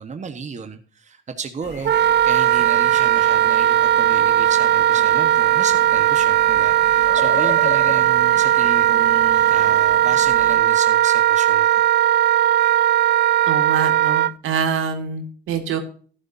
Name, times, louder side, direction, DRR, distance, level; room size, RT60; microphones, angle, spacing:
voice 1, 0.0-1.9 2.2-11.9, right 5 dB, 35° right, 7 dB, 1.3 m, -33 dB
sound 1, 1.6-10.6, left 4 dB, 55° left, 3.3 m, -36 dB
Wind instrument woodwind instrument, 1.8-14.3, right 11 dB, 55° right, 0.5 m, -17 dB
voice 2, 13.5-15.8, right 6 dB, 80° right, 6 dB, 2.3 m, -25 dB
13.5 x 11.0 x 2.7 m, 0.42 s
cardioid pair, 90°, 20 cm